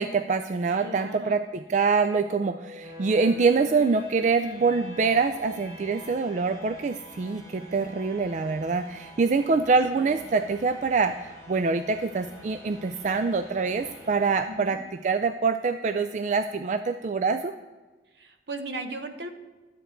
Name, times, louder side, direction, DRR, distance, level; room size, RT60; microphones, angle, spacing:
voice 1, 0.0-17.5, right 4 dB, 40° right, 8 dB, 0.3 m, -25 dB
voice 2, 0.8-1.5 10.0-10.4 14.5-14.8 18.2-19.3, right 2 dB, 70° right, 6 dB, 1.0 m, -37 dB
sound 1, 2.1-15.1, left 1 dB, 20° right, 2.9 m, -47 dB
12.5 x 8.0 x 4.5 m, 1.3 s
head